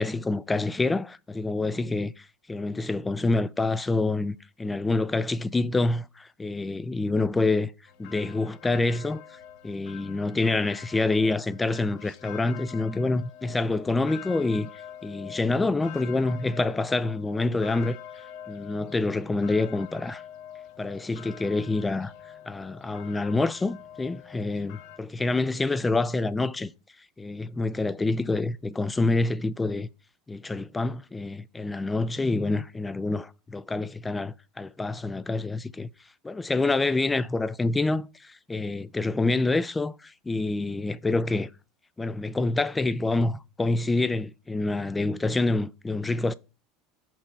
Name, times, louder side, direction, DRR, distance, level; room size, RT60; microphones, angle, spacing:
voice 1, 0.0-7.7 8.0-9.4 9.6-14.7 15.0-18.0 18.5-20.2 20.8-22.1 22.5-26.7 27.2-29.9 30.3-35.9 36.2-41.5 42.0-46.3, left 2 dB, 15° left, 0.4 m, -27 dB
sound 1, 7.9-25.0, left 10 dB, 65° left, 0.8 m, -45 dB
5.9 x 3.3 x 5.5 m
supercardioid pair, 120°, 0 cm